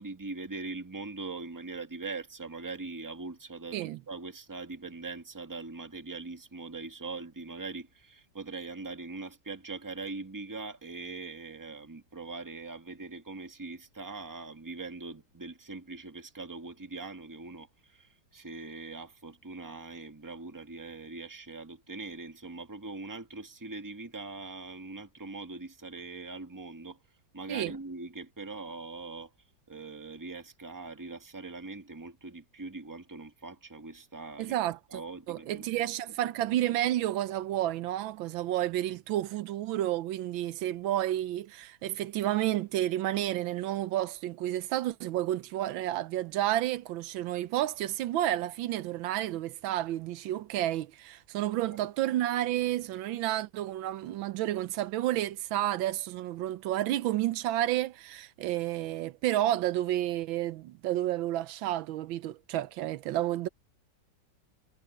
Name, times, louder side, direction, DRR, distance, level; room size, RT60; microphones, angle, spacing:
voice 1, 0.0-27.0 27.3-34.6 34.9-36.1, right 3 dB, 10° right, 1.4 m, -42 dB
voice 2, 34.4-35.0 35.3-63.5, right 13 dB, 85° right, 1.4 m, -31 dB
omnidirectional pair, 2.1 m